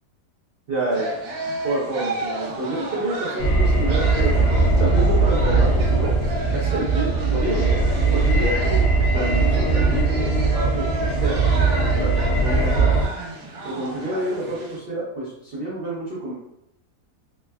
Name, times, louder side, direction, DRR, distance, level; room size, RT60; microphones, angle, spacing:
voice 1, 0.7-1.2 1.6-4.3 4.8-6.1 6.5-7.8 8.1-8.8 9.1-11.4 12.0-12.9 13.6-16.3, right 2 dB, 55° right, -7 dB, 0.6 m, -28 dB
sound 1, 0.9-14.8, right 2 dB, 80° right, 1.3 m, -33 dB
sound 2, 3.4-13.1, right 3 dB, 70° left, 1.0 m, -20 dB
3.4 x 2.1 x 2.3 m, 0.80 s
omnidirectional pair, 1.7 m